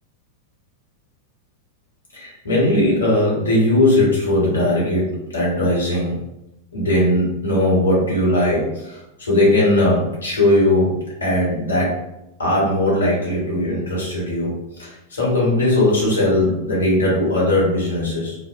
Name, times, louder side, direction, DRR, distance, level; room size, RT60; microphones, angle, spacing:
voice 1, 2.1-6.2 6.7-12.0 12.4-14.5 14.8-18.4, left 1 dB, 70° left, -5 dB, 1.0 m, -19 dB
2.6 x 2.0 x 2.4 m, 0.89 s
figure-of-eight pair, 90°, 0 cm